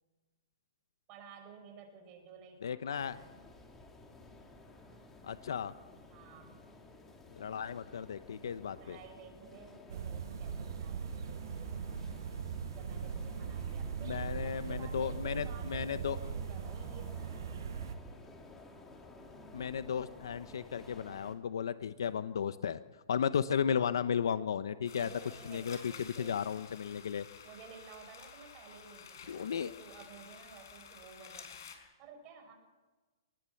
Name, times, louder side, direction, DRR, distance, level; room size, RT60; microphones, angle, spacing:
voice 1, 1.1-3.5 6.1-6.6 8.8-12.2 12.8-14.3 14.5-17.7 24.9-26.4 27.4-31.7 32.0-32.5, right 5 dB, 30° right, 4 dB, 5.5 m, -54 dB
voice 2, 2.6-3.2 5.2-5.7 7.4-9.0 14.0-16.2 19.5-22.8 23.1-25.1 25.5-27.3 29.3-29.7, left 7 dB, 80° left, 12 dB, 0.9 m, -34 dB
sound 1, 3.0-21.3, left 2 dB, 10° left, 2.6 m, -54 dB
sound 2, 9.9-18.0, right 7 dB, 70° right, 2.2 m, -40 dB
sound 3, 24.9-31.8, left 7 dB, 65° left, 5.3 m, -52 dB
26.5 x 20.0 x 7.2 m, 1.3 s
hypercardioid pair, 155°, 2 cm